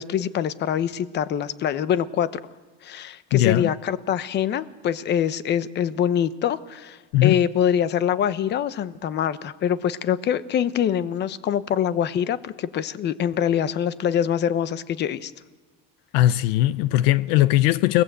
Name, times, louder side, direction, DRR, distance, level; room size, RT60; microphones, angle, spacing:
voice 1, 0.0-2.3 2.8-15.3, left 9 dB, 35° left, 1.0 m, -24 dB
voice 2, 3.3-3.7 7.1-7.4 16.1-18.0, left 15 dB, 70° left, 0.7 m, -19 dB
29.5 x 18.5 x 8.1 m
cardioid pair, 145°, 31 cm